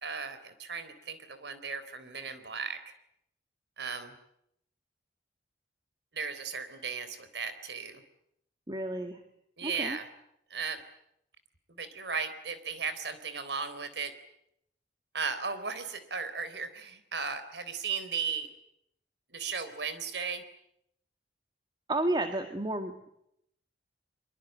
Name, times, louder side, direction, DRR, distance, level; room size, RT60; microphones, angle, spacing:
voice 1, 0.0-2.8 3.8-4.1 6.1-8.0 9.6-10.1 10.5-10.8 11.7-14.1 15.1-18.5 19.3-20.4, right 5 dB, 70° right, 11 dB, 3.7 m, -36 dB
voice 2, 8.7-9.2 9.6-10.0 21.9-23.1, right 1 dB, 25° right, 6 dB, 1.9 m, -32 dB
25.0 x 24.0 x 9.2 m, 0.76 s
head